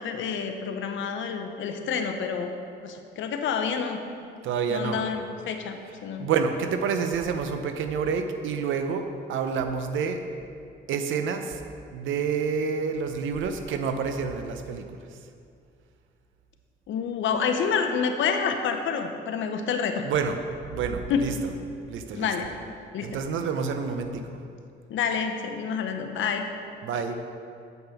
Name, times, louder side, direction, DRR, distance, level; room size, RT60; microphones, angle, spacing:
voice 1, 0.0-2.5 2.8-4.0 4.7-6.3 16.9-20.0 21.1-21.3 22.1-22.5 22.9-23.2 24.9-26.4, left 6 dB, 75° left, 6 dB, 0.8 m, -28 dB
voice 2, 4.4-5.0 5.8-5.9 6.2-10.2 10.9-11.6 11.9-14.9 20.0-20.4 20.7-21.6 21.9-22.5 23.0-24.3 26.8-27.2, right 6 dB, 80° right, 7 dB, 0.7 m, -28 dB
7.9 x 5.4 x 5.8 m, 2.4 s
cardioid pair, 90°, 20 cm